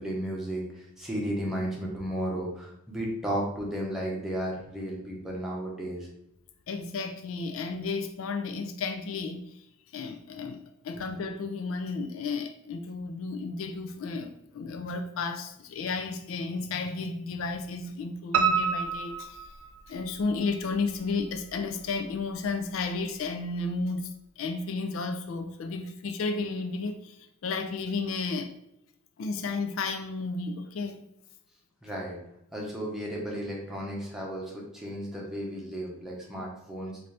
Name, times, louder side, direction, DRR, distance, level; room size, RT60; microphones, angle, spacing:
voice 1, 0.0-6.1 31.8-32.2 32.5-37.0, equal, ahead, -4 dB, 0.9 m, -34 dB
voice 2, 6.7-9.7 9.9-19.5 19.9-24.1 24.4-28.5 29.2-31.0, left 4 dB, 70° left, 7 dB, 0.4 m, -33 dB
Piano, 18.3-20.3 20.7-21.5 21.9-22.0 22.4-22.5 22.8-22.9, right 6 dB, 85° right, 0.4 m, -28 dB
4.1 x 2.6 x 3.3 m, 0.81 s
head